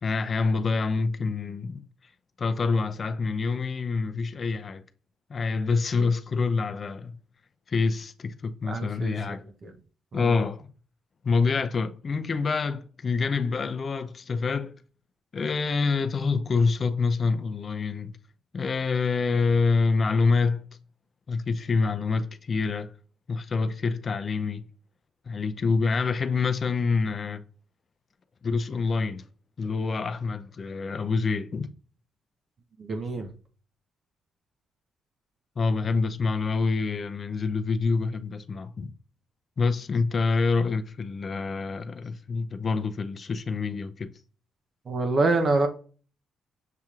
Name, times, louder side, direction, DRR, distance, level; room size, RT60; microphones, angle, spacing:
voice 1, 0.0-1.8 2.4-4.8 5.3-7.2 7.7-9.4 10.1-10.7 11.2-14.7 15.3-18.1 18.5-20.7 21.3-22.9 23.3-24.6 25.3-27.4 28.4-29.2 29.6-31.7 35.6-38.9 39.6-44.1, left 4 dB, 40° left, 0.4 m, -26 dB
voice 2, 8.7-9.7 10.1-10.4 32.8-33.3 44.9-45.7, right 3 dB, 45° right, 0.7 m, -27 dB
6.7 x 2.9 x 2.4 m
cardioid pair, 90°, 0 cm